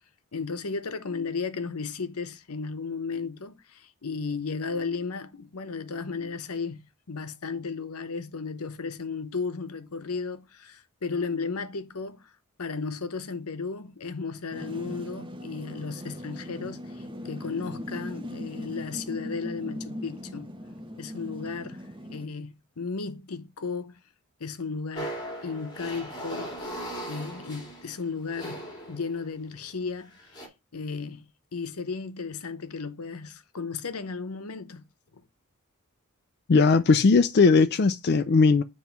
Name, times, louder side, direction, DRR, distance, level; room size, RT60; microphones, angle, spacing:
voice 1, 0.3-6.8 7.1-12.3 12.6-20.5 21.0-24.0 24.4-26.6 27.1-30.2 30.7-34.8 35.1-35.2, left 4 dB, 85° left, 0.9 m, -34 dB
sound 1, 14.5-22.3, left 1 dB, 25° right, 1.2 m, -39 dB
sound 2, 24.9-29.4 30.1-30.5, right 1 dB, 20° left, 2.1 m, -38 dB
voice 2, 36.5-38.6, left 4 dB, 50° left, 0.4 m, -19 dB
9.0 x 3.1 x 4.5 m
head